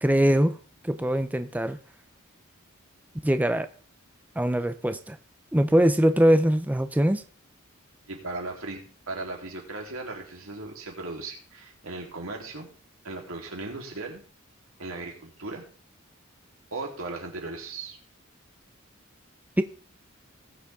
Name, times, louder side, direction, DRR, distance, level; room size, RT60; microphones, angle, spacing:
voice 1, 0.0-0.6 0.8-1.8 3.2-3.7 4.4-5.2 5.5-7.2 19.6-19.7, equal, 10° right, 10 dB, 0.5 m, -22 dB
voice 2, 8.1-8.8 9.1-12.7 13.0-14.2 14.8-15.6 16.7-18.0, right 2 dB, 85° right, 0 dB, 3.6 m, -37 dB
20.0 x 7.1 x 3.7 m, 0.40 s
head